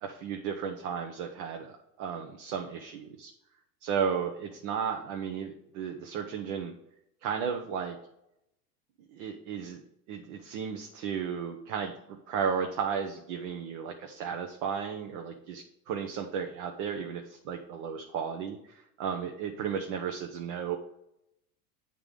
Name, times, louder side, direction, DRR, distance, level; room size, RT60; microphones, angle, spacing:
voice 1, 0.0-3.3 3.8-6.7 7.2-8.0 9.1-9.8 10.1-20.8, right 7 dB, 65° right, 4 dB, 0.9 m, -34 dB
8.1 x 3.8 x 5.1 m, 0.83 s
supercardioid pair, 110°, 47 cm